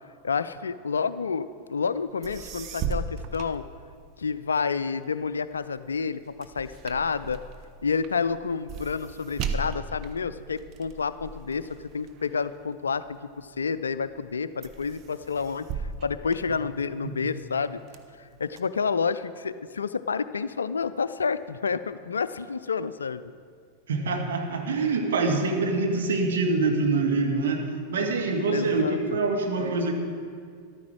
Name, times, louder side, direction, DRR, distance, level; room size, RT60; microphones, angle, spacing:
voice 1, 0.2-3.6 4.2-7.4 7.8-17.8 18.2-23.3 28.5-29.0, left 5 dB, 70° left, 14 dB, 0.4 m, -29 dB
sound 1, 2.0-2.1 2.2-4.3 4.8-13.4 14.0-14.3 14.6-17.1 17.6-18.6, right 5 dB, 35° right, 0.8 m, -37 dB
voice 2, 23.9-29.9, right 3 dB, 60° right, 2 dB, 1.6 m, -25 dB
13.5 x 12.0 x 4.7 m, 2.1 s
figure-of-eight pair, 90°, 0 cm